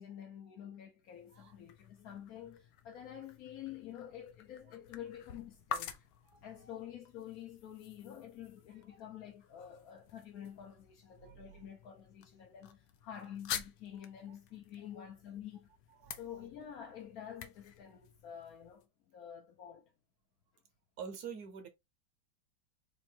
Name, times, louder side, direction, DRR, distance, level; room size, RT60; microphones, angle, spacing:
voice 1, 0.0-5.9 6.4-15.7 16.2-19.8, left 10 dB, 60° left, 1.0 m, -48 dB
sound 1, 1.0-18.9, left 9 dB, 75° left, 1.4 m, -49 dB
voice 2, 6.3-6.8 8.9-9.0 11.2-11.6 14.3-14.4 16.0-16.2 21.0-21.7, right 6 dB, 60° right, 1.2 m, -47 dB
4.5 x 2.5 x 4.4 m
omnidirectional pair, 2.2 m